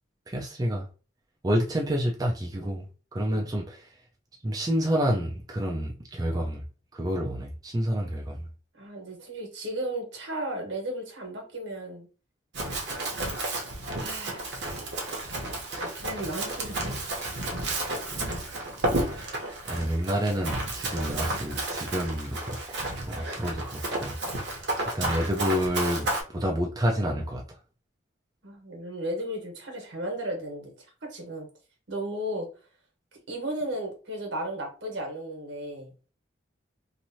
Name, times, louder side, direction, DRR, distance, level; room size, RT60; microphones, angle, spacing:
voice 1, 0.3-0.9 1.4-2.9 3.1-3.8 4.4-6.6 6.9-8.4 19.1-19.3 19.7-22.6 23.1-24.1 24.9-27.4, equal, 20° right, 0.4 m, -28 dB
voice 2, 8.7-12.1 14.0-14.6 15.8-17.2 28.4-30.7 31.0-31.5 31.9-32.5 33.3-35.9, right 1 dB, 75° right, 1.2 m, -35 dB
Run, 12.5-26.2, right 2 dB, 60° right, 0.9 m, -32 dB
3.0 x 2.5 x 2.7 m
head